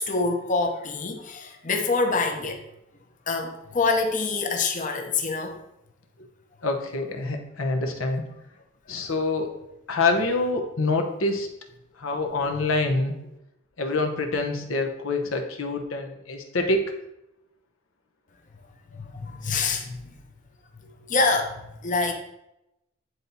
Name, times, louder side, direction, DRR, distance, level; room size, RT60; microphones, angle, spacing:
voice 1, 0.0-2.6 3.3-5.5 12.1-12.2 12.5-12.7 18.9-20.1 21.1-22.1, left 3 dB, 40° left, 4 dB, 0.7 m, -26 dB
voice 2, 6.6-8.2 8.9-9.5 9.9-11.5 12.0-13.1 13.8-16.8, left 3 dB, 80° left, 4 dB, 0.9 m, -26 dB
9.7 x 4.0 x 2.8 m, 0.87 s
head